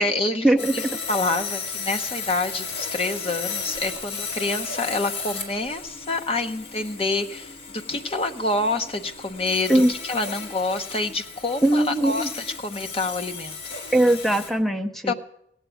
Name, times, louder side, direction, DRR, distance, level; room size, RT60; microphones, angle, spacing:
voice 1, 0.0-13.6 15.1-15.2, left 2 dB, 30° left, 5 dB, 0.8 m, -27 dB
Sawing, 0.6-14.5, left 5 dB, 80° left, 3.5 m, -35 dB
voice 2, 11.6-12.3 13.9-15.1, right 1 dB, ahead, 6 dB, 0.7 m, -20 dB
17.0 x 8.1 x 9.2 m, 0.77 s
head